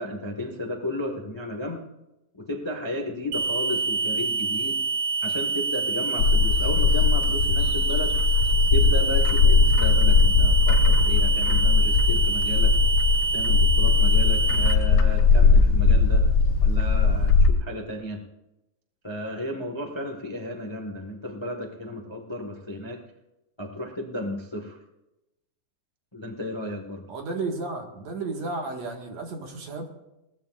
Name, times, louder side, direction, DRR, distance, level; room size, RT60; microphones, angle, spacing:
voice 1, 0.0-1.8 2.3-4.8 5.2-8.2 8.7-12.7 13.3-16.2 16.6-18.2 19.0-23.0 23.6-24.8 26.1-27.0, left 1 dB, 40° left, 2 dB, 0.4 m, -34 dB
sound 1, 3.3-14.7, right 4 dB, 85° right, 2.9 m, -26 dB
Bird, 6.2-17.5, left 4 dB, 70° left, 1.3 m, -19 dB
voice 2, 27.1-29.9, right 3 dB, 55° right, 2 dB, 2.9 m, -33 dB
21.5 x 18.5 x 2.6 m, 0.93 s
omnidirectional pair, 3.9 m